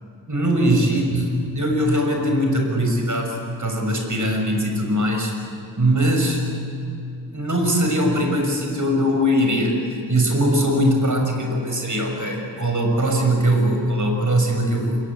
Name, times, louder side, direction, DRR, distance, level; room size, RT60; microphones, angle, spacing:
voice 1, 0.3-5.3 5.8-6.5 7.3-9.8 10.1-15.0, equal, 45° right, 2 dB, 6.1 m, -21 dB
27.0 x 22.0 x 8.6 m, 2.5 s
wide cardioid pair, 75°, 43 cm